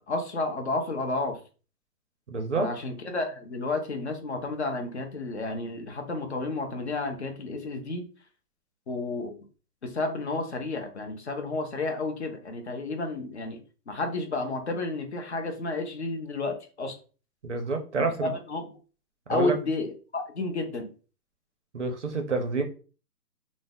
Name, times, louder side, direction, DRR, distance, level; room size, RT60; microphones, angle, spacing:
voice 1, 0.1-1.4 2.6-8.0 8.9-9.3 9.8-13.6 13.9-16.9 18.0-18.7 19.3-20.9, left 2 dB, 45° left, 4 dB, 0.6 m, -31 dB
voice 2, 2.3-2.7 17.4-18.3 19.3-19.5 21.7-22.6, right 3 dB, 50° right, 5 dB, 0.5 m, -28 dB
2.6 x 2.0 x 3.4 m, 0.36 s
hypercardioid pair, 170°, 48 cm